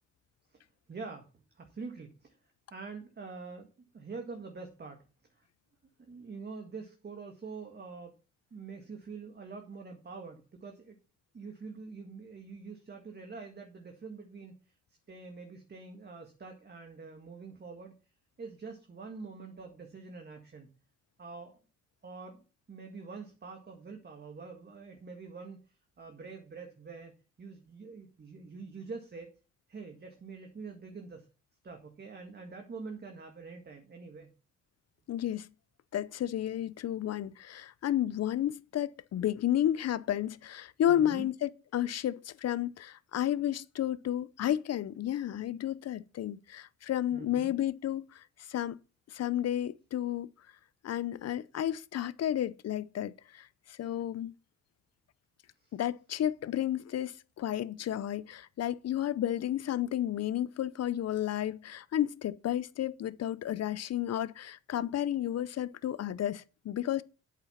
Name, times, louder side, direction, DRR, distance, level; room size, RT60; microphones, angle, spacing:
voice 1, 0.9-2.4 2.7-3.7 3.9-5.0 5.3-5.5 6.0-8.1 8.5-11.0 11.3-14.8 15.1-17.9 18.4-20.7 21.2-21.6 22.0-25.6 26.0-29.3 29.7-31.3 31.6-34.3 40.9-41.3 47.1-47.5 55.6-55.7, right 4 dB, 35° right, 1.8 m, -45 dB
voice 2, 35.1-35.5 35.9-48.8 49.1-50.3 50.8-54.3 55.7-67.0, left 11 dB, 55° left, 0.7 m, -32 dB
8.4 x 7.6 x 5.7 m
cardioid pair, 90°, 30 cm